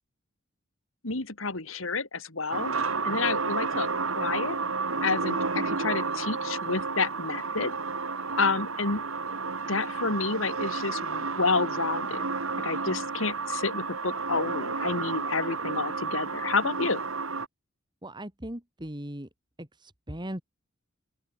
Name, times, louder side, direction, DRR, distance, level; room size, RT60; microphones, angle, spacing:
voice 1, 1.0-2.7 3.0-3.9 4.2-4.6 5.0-7.7 8.4-9.0 9.7-12.2 12.6-17.0, left 4 dB, 75° left, 2.8 m, -29 dB
sound 1, 2.5-17.5, right 4 dB, 85° right, 2.6 m, -31 dB
voice 2, 18.0-19.3 19.6-20.4, right 1 dB, 20° right, 3.2 m, -38 dB
open air
head